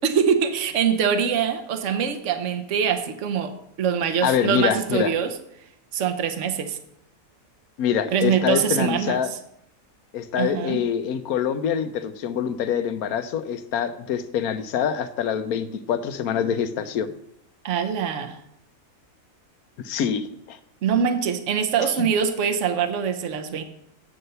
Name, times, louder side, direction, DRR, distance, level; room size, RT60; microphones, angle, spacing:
voice 1, 0.0-5.3 5.9-6.8 8.1-9.2 10.4-10.8 17.6-18.4 20.8-23.6, right 7 dB, 60° right, 1.2 m, -24 dB
voice 2, 4.2-5.1 7.8-9.3 10.1-17.1 19.8-20.6 21.8-21.9, left 8 dB, 85° left, 1.2 m, -25 dB
8.6 x 7.9 x 5.6 m
omnidirectional pair, 1.5 m